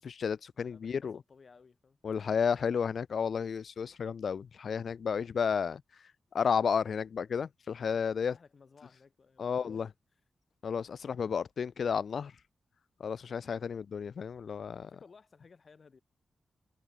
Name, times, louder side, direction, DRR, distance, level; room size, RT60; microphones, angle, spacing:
voice 1, 0.0-1.2 2.0-5.8 6.3-8.4 9.4-9.9 10.6-12.3 13.0-14.9, left 6 dB, 60° left, 0.3 m, -32 dB
voice 2, 0.5-2.9 8.3-9.8 10.1-10.2 14.8-16.0, left 5 dB, 45° left, 4.1 m, -60 dB
wide cardioid pair, 145°, 0 cm